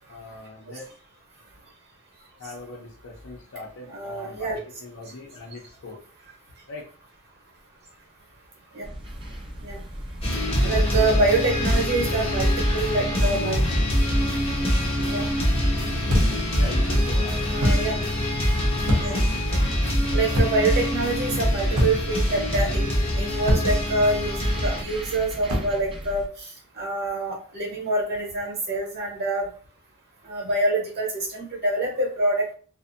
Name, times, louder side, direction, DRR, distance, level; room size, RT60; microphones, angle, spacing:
voice 1, 0.1-0.9 2.4-6.0 6.7-6.9 10.6-11.3 16.5-18.0, left 2 dB, 60° left, -2 dB, 0.5 m, -40 dB
voice 2, 3.9-4.6 8.7-8.8 9.6-9.8 10.6-13.6 15.1-15.3 17.5-17.9 19.0-19.2 20.1-29.5 30.2-32.5, right 2 dB, 50° right, -2 dB, 0.9 m, -26 dB
sound 1, 8.8-26.3, equal, 25° right, 0.4 m, -37 dB
sound 2, 10.2-24.8, equal, 25° left, 0.8 m, -24 dB
sound 3, 16.1-16.5 17.6-17.9 18.9-19.3 20.3-20.7 21.7-22.2 23.5-23.8 25.5-25.8, equal, 70° right, 0.7 m, -23 dB
2.5 x 2.0 x 2.5 m, 0.40 s
head